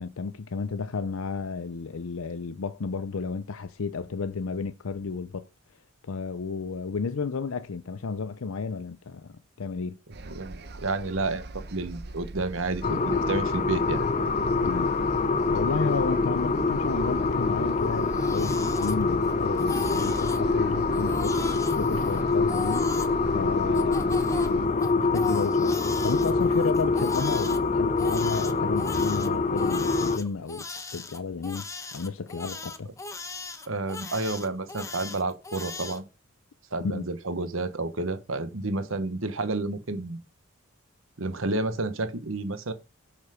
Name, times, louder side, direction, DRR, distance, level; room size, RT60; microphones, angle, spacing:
voice 1, 0.0-5.4 6.0-10.0 14.6-14.9 15.5-21.4 21.8-22.9 23.3-25.8 26.0-30.7 30.9-31.6 31.9-32.9 36.8-37.1, left 4 dB, 75° left, 0.6 m, -32 dB
sound 1, 10.1-24.7, right 2 dB, 50° right, 0.8 m, -41 dB
voice 2, 10.2-14.0 33.7-36.0 36.7-40.2 41.2-42.7, right 2 dB, 65° right, 1.1 m, -30 dB
sound 2, 12.8-30.2, left 3 dB, 35° left, 0.6 m, -25 dB
Crying sobbing, 17.9-19.3 19.6-20.4 20.9-23.1 23.7-27.6 28.0-36.0, left 3 dB, 15° left, 1.0 m, -39 dB
7.1 x 6.8 x 5.0 m
head